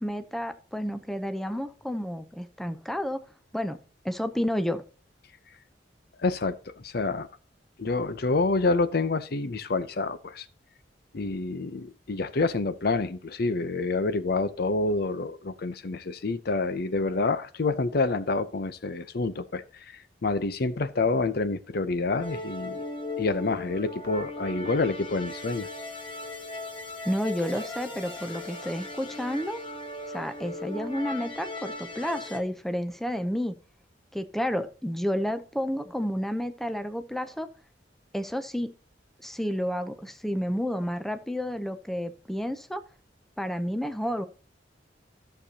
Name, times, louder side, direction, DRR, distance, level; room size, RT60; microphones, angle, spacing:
voice 1, 0.0-3.2 3.5-3.8 4.0-4.8 27.0-29.6 30.1-33.5 34.1-37.5 38.1-38.7 39.2-42.8 43.4-44.2, equal, ahead, 0.6 m, -30 dB
voice 2, 6.2-7.3 7.8-10.5 11.1-22.8 23.2-25.7, left 3 dB, 60° left, 0.6 m, -28 dB
sound 1, 22.2-32.4, left 2 dB, 30° left, 1.4 m, -38 dB
13.5 x 6.7 x 2.8 m
head